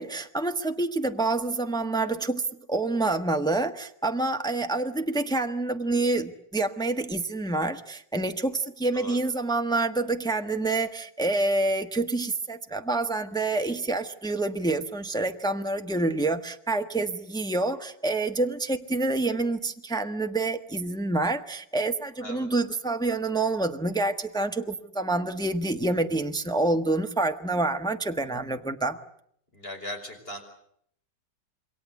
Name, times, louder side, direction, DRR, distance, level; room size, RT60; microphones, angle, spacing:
voice 1, 0.0-29.0, right 2 dB, 5° left, 6 dB, 1.0 m, -27 dB
voice 2, 29.5-30.4, left 1 dB, 30° left, 6 dB, 5.6 m, -38 dB
27.5 x 22.5 x 8.3 m, 0.69 s
omnidirectional pair, 1.9 m